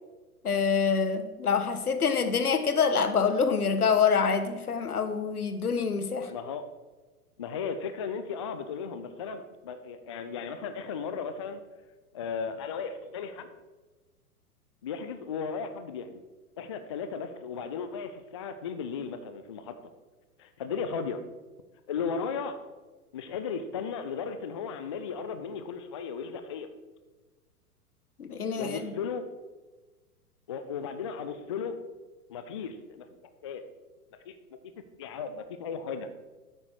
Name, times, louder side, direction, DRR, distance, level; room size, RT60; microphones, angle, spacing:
voice 1, 0.4-6.3 28.2-28.9, left 6 dB, 75° left, 8 dB, 1.3 m, -26 dB
voice 2, 6.3-6.6 7.4-11.6 12.1-13.5 14.8-16.2 16.6-19.8 20.4-21.2 21.9-22.6 23.1-26.7 28.6-29.3 30.5-31.8 32.3-33.0 33.4-33.6 34.3-34.6 35.0-36.1, left 6 dB, 20° left, 9 dB, 0.3 m, -35 dB
9.5 x 8.5 x 4.7 m, 1.2 s
figure-of-eight pair, 105°, 45 cm